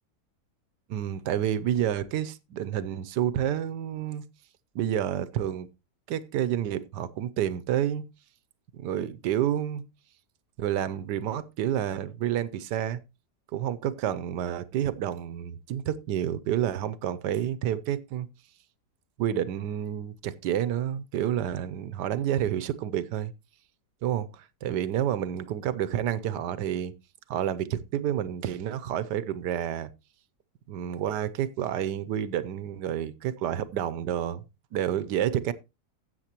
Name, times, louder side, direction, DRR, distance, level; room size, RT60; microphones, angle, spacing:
voice 1, 0.9-4.2 4.7-5.7 6.1-8.0 8.7-9.8 10.6-13.0 13.5-18.3 19.2-23.3 24.0-26.9 27.3-29.9 30.7-34.4 34.7-35.5, right 10 dB, 85° right, 1.3 m, -29 dB
12.5 x 8.0 x 2.9 m
omnidirectional pair, 1.8 m